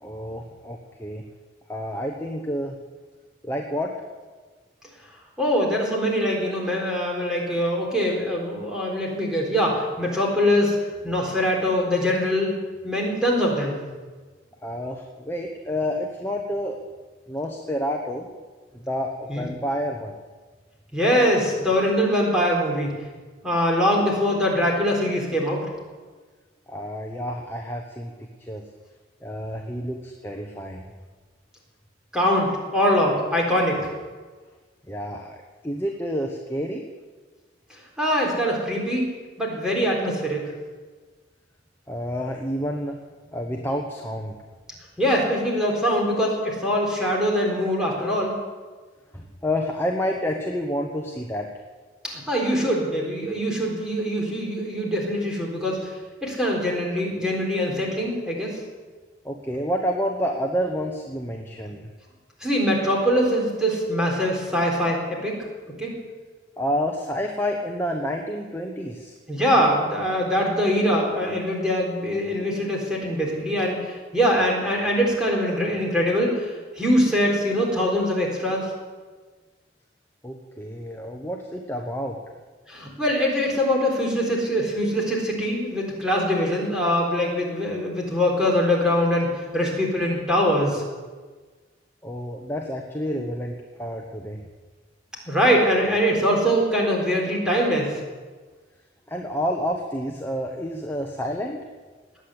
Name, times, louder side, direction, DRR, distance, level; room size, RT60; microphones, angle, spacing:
voice 1, 0.0-1.2 1.7-2.8 3.4-3.9 14.6-16.8 17.3-18.3 18.7-20.1 26.7-28.6 29.2-30.9 34.9-35.4 35.6-36.8 41.9-43.0 43.3-44.4 49.1-51.5 59.2-61.9 66.6-69.1 80.2-82.2 92.0-94.4 99.1-101.6, equal, 15° left, 1 dB, 1.1 m, -29 dB
voice 2, 5.4-10.8 11.0-12.5 12.8-13.8 19.3-19.5 20.9-23.0 23.4-25.7 32.1-33.9 38.0-39.1 39.4-40.5 45.0-48.3 52.0-55.9 56.2-58.6 62.4-65.4 65.8-65.9 69.3-78.7 82.7-90.8 95.3-98.0, equal, 5° right, -3 dB, 4.0 m, -23 dB
20.0 x 8.9 x 8.2 m, 1.4 s
head